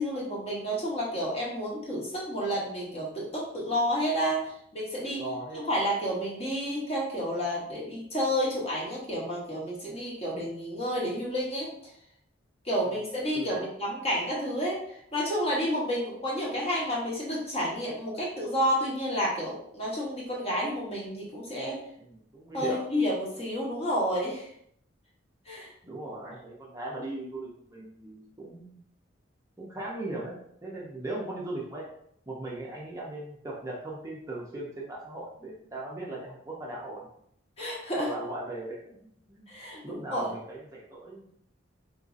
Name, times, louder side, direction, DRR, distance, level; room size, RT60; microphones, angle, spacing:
voice 1, 0.0-5.2 5.5-11.7 12.6-21.8 22.5-24.5 25.5-25.7 37.6-38.1 39.5-40.3, equal, 30° left, -5 dB, 0.9 m, -30 dB
voice 2, 5.0-5.6 13.3-13.7 22.0-22.8 25.8-28.8 29.6-31.9 32.3-37.1 38.0-39.5 39.8-41.3, right 2 dB, 15° right, -5 dB, 0.5 m, -38 dB
3.8 x 2.6 x 2.5 m, 0.68 s
head